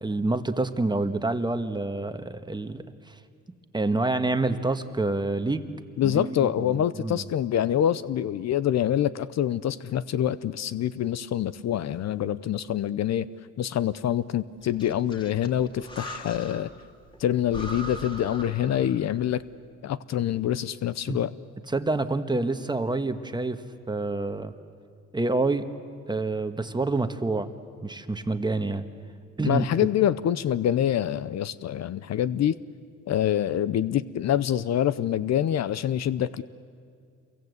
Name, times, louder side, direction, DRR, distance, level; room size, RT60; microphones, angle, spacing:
voice 1, 0.0-3.2 3.7-5.6 6.0-6.7 7.0-7.2 21.1-21.2 21.7-24.5 25.1-25.7 26.1-27.5 27.8-28.9 29.4-29.6, right 2 dB, 15° right, 8 dB, 1.4 m, -27 dB
voice 2, 6.0-13.3 13.6-16.7 17.2-19.4 19.8-21.3 29.4-32.6 33.1-36.4, left 10 dB, 60° left, 16 dB, 0.7 m, -26 dB
Breathing, 14.6-16.8 17.1-17.2 17.5-19.2, equal, 15° left, 2.8 m, -40 dB
27.5 x 23.0 x 8.1 m, 2.2 s
cardioid pair, 90°, 30 cm